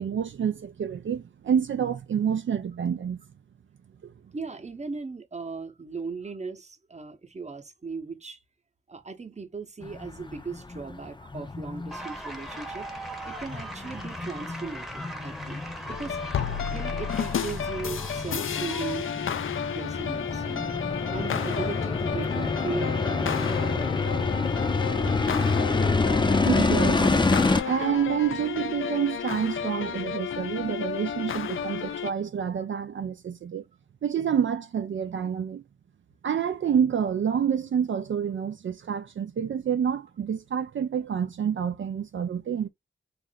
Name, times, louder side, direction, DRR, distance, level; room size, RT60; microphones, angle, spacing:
voice 1, 0.0-3.2 4.0-4.1 26.5-27.0 27.6-33.6 34.0-35.6 36.2-42.7, right 8 dB, 75° right, 0.4 m, -28 dB
voice 2, 4.3-8.4 8.9-20.7 21.1-23.9 27.0-27.2, right 4 dB, 35° right, 0.8 m, -38 dB
sound 1, 9.8-27.6, left 3 dB, 25° left, 0.5 m, -28 dB
sound 2, 11.9-19.1, right 1 dB, ahead, 0.8 m, -40 dB
sound 3, 15.9-32.1, left 8 dB, 85° left, 0.4 m, -32 dB
3.1 x 2.5 x 3.9 m
wide cardioid pair, 85°, 20 cm